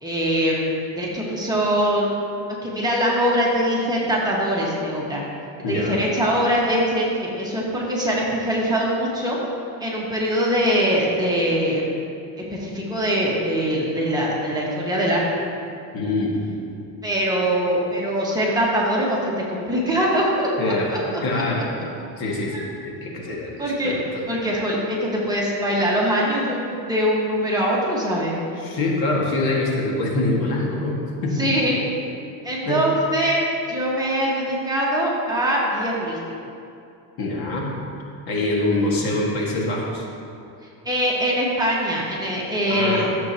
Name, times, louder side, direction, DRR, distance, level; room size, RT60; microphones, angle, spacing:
voice 1, 0.0-2.1 2.6-5.2 5.7-9.4 9.8-11.9 12.5-15.2 17.0-21.2 22.5-22.7 23.2-24.0 24.3-28.4 31.4-31.8 32.4-33.4 33.7-36.2 40.8-43.1, equal, 10° right, -5 dB, 1.6 m, -22 dB
voice 2, 5.6-6.0 15.9-16.4 20.6-21.7 22.2-22.6 22.8-24.2 28.6-31.5 32.6-32.9 37.2-37.7 38.3-40.1 42.7-43.1, left 2 dB, 55° left, -2 dB, 1.9 m, -24 dB
13.5 x 7.5 x 2.9 m, 2.6 s
cardioid pair, 135°, 44 cm